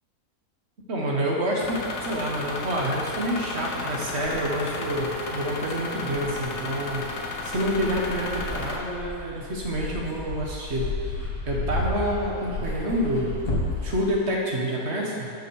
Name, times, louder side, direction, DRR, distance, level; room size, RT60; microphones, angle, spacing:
voice 1, 0.9-7.1 7.4-13.3 13.8-15.3, equal, 45° right, -2 dB, 1.8 m, -28 dB
sound 1, 1.6-8.8, left 2 dB, 90° left, 1.6 m, -33 dB
Dog, 4.3-4.4 5.2-5.3 6.1-14.1, left 2 dB, 65° left, 2.4 m, -32 dB
11.0 x 5.9 x 6.6 m, 2.5 s
omnidirectional pair, 1.6 m